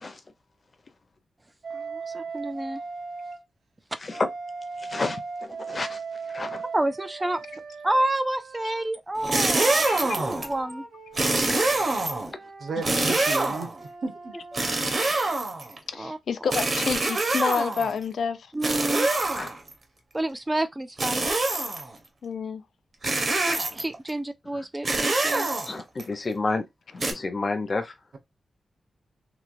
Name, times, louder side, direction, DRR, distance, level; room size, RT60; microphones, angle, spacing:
Wind instrument woodwind instrument, 1.6-3.4 4.1-8.9 9.5-14.8, right 4 dB, 85° right, 1.3 m, -39 dB
voice 1, 1.7-2.8 6.7-7.4 7.8-10.9 14.5-14.6 15.9-16.2 18.5-19.1 20.1-21.4 23.3-25.6, right 1 dB, 15° right, 0.3 m, -29 dB
voice 2, 4.8-6.0 6.3-6.6 11.5-11.9 19.3-19.5 24.5-24.6 25.7-26.7 26.9-27.9, left 3 dB, 30° left, 0.6 m, -30 dB
sound 1, 9.2-10.5 11.1-12.3 12.8-13.8 14.5-15.8 16.5-17.9 18.6-19.7 21.0-21.9 23.0-24.0 24.8-26.0 27.0-27.1, right 2 dB, 40° right, 0.7 m, -25 dB
voice 3, 9.9-10.2 11.2-11.3 15.0-15.1 15.9-18.5 22.2-22.6, left 6 dB, 85° left, 0.4 m, -29 dB
voice 4, 12.6-13.7 14.0-14.3, right 3 dB, 65° right, 0.9 m, -33 dB
3.1 x 3.0 x 2.5 m
wide cardioid pair, 160°, 0 cm